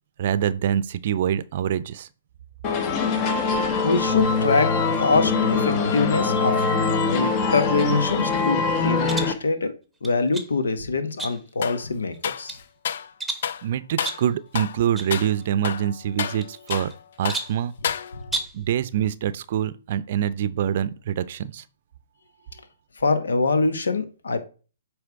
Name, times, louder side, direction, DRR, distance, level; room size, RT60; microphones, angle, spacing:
voice 1, 0.2-2.1 13.6-16.9 17.2-17.7 18.5-21.6, right 10 dB, 55° right, 0.5 m, -25 dB
sound 1, 2.6-9.3, left 4 dB, 35° left, 1.1 m, -23 dB
voice 2, 3.8-6.6 7.1-9.7 10.0-12.6 18.1-18.2 22.6-22.7 23.0-24.5, left 4 dB, 85° left, 1.2 m, -24 dB
sound 2, 9.0-9.4 10.0-10.5 11.2-11.6 12.1-12.6 13.2-13.6 14.0-14.3 15.0-15.1 15.4-15.5 16.4-16.9 17.3-17.6 18.2-18.6, right 3 dB, 5° right, 1.0 m, -33 dB
sound 3, 11.6-11.8 12.2-13.1 13.4-13.7 14.0-14.3 14.6-14.8 15.1-15.3 15.6-17.0 17.3-17.5 17.8-18.4, left 8 dB, 60° left, 0.5 m, -30 dB
8.1 x 3.4 x 4.6 m
hypercardioid pair, 130°, 0 cm